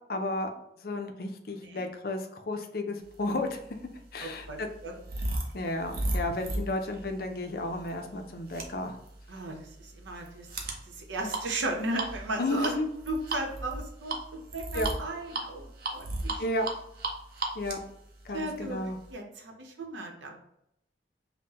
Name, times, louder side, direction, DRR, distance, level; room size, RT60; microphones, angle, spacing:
voice 1, 0.1-0.5 0.8-3.6 4.1-4.7 5.5-9.0 12.4-12.9 14.7-14.9 16.4-16.7 17.5-17.8 18.3-19.0, left 2 dB, 55° left, 5 dB, 0.5 m, -32 dB
voice 2, 1.5-1.9 4.2-4.9 9.3-12.7 13.1-16.4 18.3-20.4, right 2 dB, 90° right, 2 dB, 0.8 m, -36 dB
sound 1, 3.5-19.1, right 2 dB, 55° right, 0.6 m, -36 dB
5.4 x 2.2 x 2.9 m, 0.79 s
head